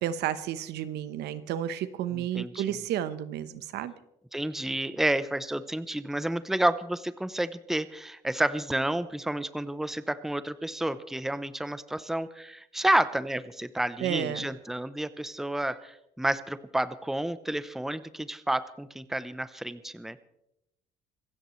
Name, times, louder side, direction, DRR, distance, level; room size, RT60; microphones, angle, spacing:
voice 1, 0.0-3.9 14.0-14.5, right 11 dB, 80° right, 13 dB, 1.1 m, -32 dB
voice 2, 2.1-2.8 4.3-20.2, right 1 dB, ahead, 13 dB, 0.7 m, -30 dB
26.0 x 16.0 x 3.2 m, 0.82 s
cardioid pair, 110°, 17 cm